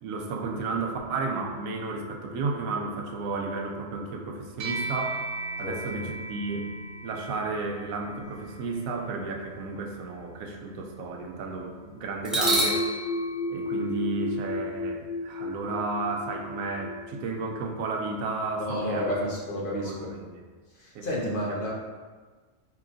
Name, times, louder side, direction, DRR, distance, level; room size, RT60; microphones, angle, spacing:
voice 1, 0.0-5.2 5.6-6.7 7.0-12.9 13.5-19.1 19.7-20.4 20.9-21.7, right 3 dB, 90° right, 2 dB, 1.0 m, -33 dB
sound 1, 1.1-4.7 12.2-20.1, left 1 dB, ahead, 0.3 m, -33 dB
sound 2, 4.6-14.2, right 3 dB, 55° right, 0.8 m, -40 dB
voice 2, 5.6-6.1 18.6-20.1 20.7-21.7, equal, 45° left, -5 dB, 0.9 m, -31 dB
4.7 x 3.1 x 2.5 m, 1.4 s
omnidirectional pair, 1.4 m